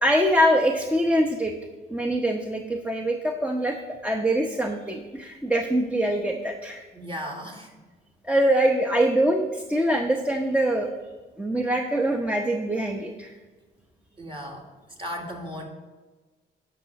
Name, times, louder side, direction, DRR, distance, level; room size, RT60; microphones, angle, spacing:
voice 1, 0.0-1.5 1.9-3.8 4.0-6.8 8.2-10.9 11.4-13.3, right 1 dB, 5° right, 3 dB, 0.9 m, -23 dB
voice 2, 6.9-7.7 14.2-14.7 15.0-15.7, equal, 25° right, 1 dB, 2.1 m, -35 dB
11.5 x 6.1 x 5.8 m, 1.3 s
cardioid pair, 90°, 20 cm